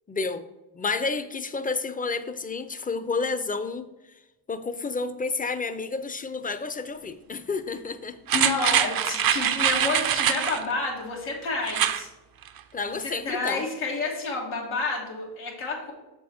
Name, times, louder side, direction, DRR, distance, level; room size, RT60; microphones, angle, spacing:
voice 1, 0.1-0.4 0.7-3.9 4.5-8.2 12.7-13.6, left 4 dB, 20° left, 11 dB, 0.6 m, -30 dB
voice 2, 8.3-12.1 12.9-15.9, left 3 dB, 90° left, -2 dB, 1.7 m, -30 dB
sound 1, 8.3-10.6 11.6-12.0 12.4-12.5, right 9 dB, 50° right, 0.6 m, -24 dB
6.8 x 4.6 x 4.3 m, 1.0 s
supercardioid pair, 55°, 47 cm